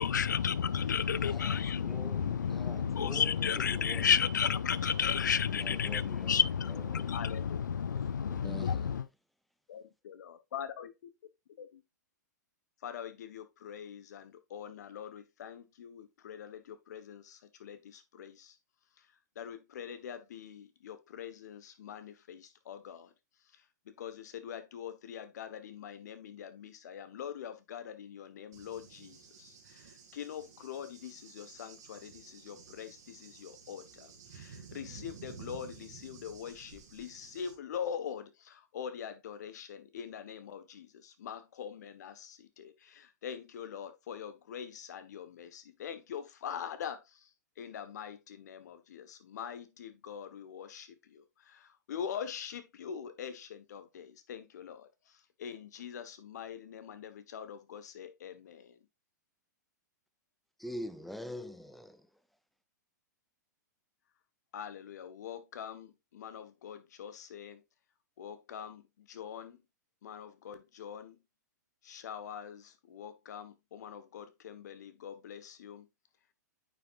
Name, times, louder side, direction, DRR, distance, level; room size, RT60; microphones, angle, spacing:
voice 1, 0.0-9.1, left 7 dB, 85° left, 0.5 m, -30 dB
voice 2, 1.2-4.1 5.5-6.4 6.7-7.3 7.9-9.0 60.6-62.1, equal, ahead, 0.7 m, -45 dB
voice 3, 7.1-7.6 9.7-10.9 11.6-11.8 12.8-18.6 19.0-19.1 19.3-23.1 23.5-47.3 47.6-58.8 64.5-67.6 68.2-69.6 70.0-71.2 71.8-75.9, left 8 dB, 65° left, 1.4 m, -44 dB
Cricket / Thunder, 28.5-37.5, right 6 dB, 65° right, 2.4 m, -52 dB
9.1 x 5.7 x 2.5 m
hypercardioid pair, 115°, 10 cm